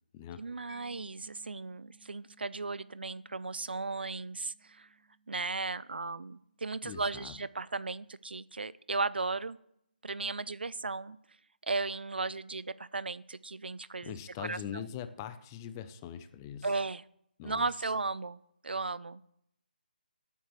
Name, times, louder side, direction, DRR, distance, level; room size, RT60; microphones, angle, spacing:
voice 1, 0.4-4.9 5.3-9.6 10.0-11.2 11.6-14.8 16.6-17.0 17.4-19.3, right 3 dB, 85° right, 19 dB, 0.5 m, -36 dB
Mallet percussion, 0.7-8.1, right 2 dB, 40° left, 5.3 m, -66 dB
voice 2, 6.8-7.3 14.0-16.7 17.4-17.7, left 9 dB, 20° left, 12 dB, 0.6 m, -42 dB
16.5 x 9.0 x 3.2 m, 0.75 s
figure-of-eight pair, 155°, 5 cm